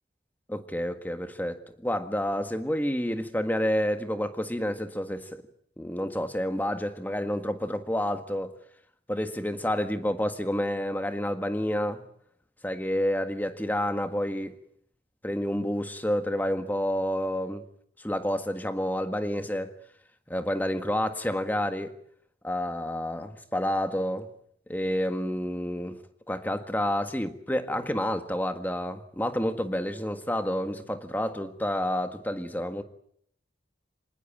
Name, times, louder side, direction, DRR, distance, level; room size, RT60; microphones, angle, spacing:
voice 1, 0.5-5.4 5.8-8.5 9.1-12.0 12.6-14.6 15.2-17.6 18.0-19.7 20.3-22.0 22.4-24.3 24.7-26.0 26.3-32.8, equal, 10° left, 1.7 m, -29 dB
26.0 x 19.5 x 8.9 m
head